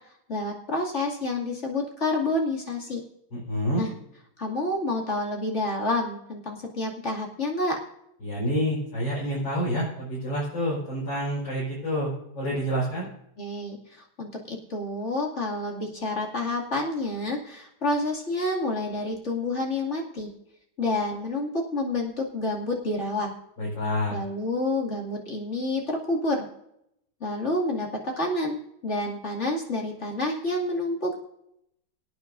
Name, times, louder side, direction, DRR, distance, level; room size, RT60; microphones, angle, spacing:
voice 1, 0.3-3.0 3.8-3.9 4.4-7.8 13.4-13.8 14.2-20.3 20.8-23.3 24.1-26.5 27.2-28.6 28.8-31.2, left 2 dB, 35° left, -2 dB, 2.7 m, -28 dB
voice 2, 3.3-3.8 8.2-13.1 23.6-24.2, equal, 65° left, -7 dB, 5.6 m, -28 dB
24.5 x 9.3 x 2.6 m, 0.77 s
omnidirectional pair, 2.2 m